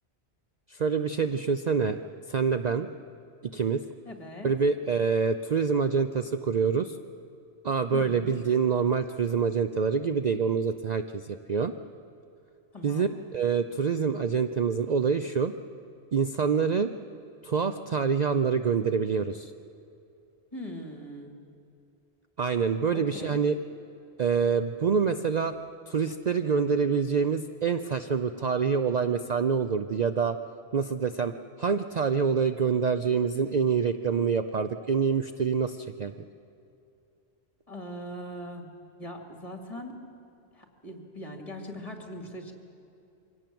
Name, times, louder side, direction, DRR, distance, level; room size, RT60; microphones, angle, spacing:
voice 1, 0.7-2.0 2.3-2.9 3.5-3.8 4.4-7.0 7.6-11.7 12.8-15.5 16.1-16.9 17.4-19.5 22.4-23.6 24.2-25.5 25.9-30.4 30.7-36.1, right 6 dB, 45° right, 9 dB, 0.6 m, -26 dB
voice 2, 4.0-4.5 7.9-8.4 12.7-13.2 20.5-21.3 22.9-23.4 37.7-38.7 39.0-40.0 40.5-42.5, equal, 30° left, 3 dB, 2.5 m, -40 dB
24.0 x 17.5 x 7.7 m, 2.7 s
omnidirectional pair, 1.1 m